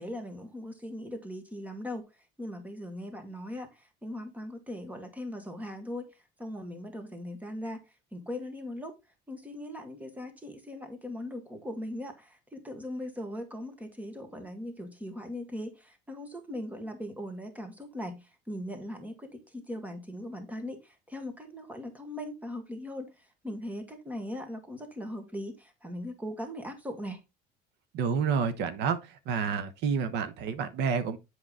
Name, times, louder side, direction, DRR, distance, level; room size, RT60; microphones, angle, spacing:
voice 1, 0.0-2.1 2.4-6.1 6.4-7.8 8.1-9.0 9.3-27.2, left 1 dB, 10° right, 1.7 m, -39 dB
voice 2, 27.9-29.0 29.3-31.2, right 6 dB, 70° right, 1.1 m, -29 dB
7.8 x 4.9 x 3.7 m
cardioid pair, 130°, 18 cm